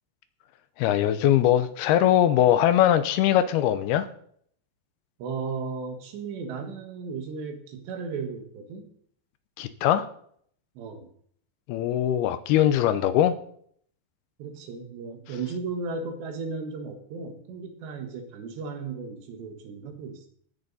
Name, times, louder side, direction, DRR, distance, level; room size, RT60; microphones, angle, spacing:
voice 1, 0.8-4.1 9.6-10.1 11.7-13.4, left 11 dB, 80° left, 11 dB, 2.4 m, -21 dB
voice 2, 5.2-8.9 10.8-11.1 14.4-20.3, right 4 dB, 75° right, 5 dB, 3.8 m, -35 dB
16.0 x 10.0 x 4.1 m, 0.62 s
omnidirectional pair, 5.1 m